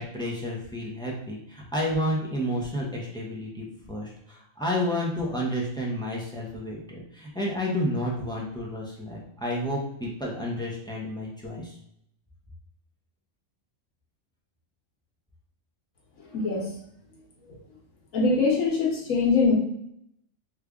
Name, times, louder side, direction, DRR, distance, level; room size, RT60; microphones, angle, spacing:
voice 1, 0.0-11.8, equal, 5° left, -3 dB, 0.4 m, -31 dB
voice 2, 16.3-16.7 18.1-19.5, left 4 dB, 85° left, -2 dB, 1.4 m, -23 dB
3.2 x 2.4 x 3.5 m, 0.75 s
omnidirectional pair, 1.4 m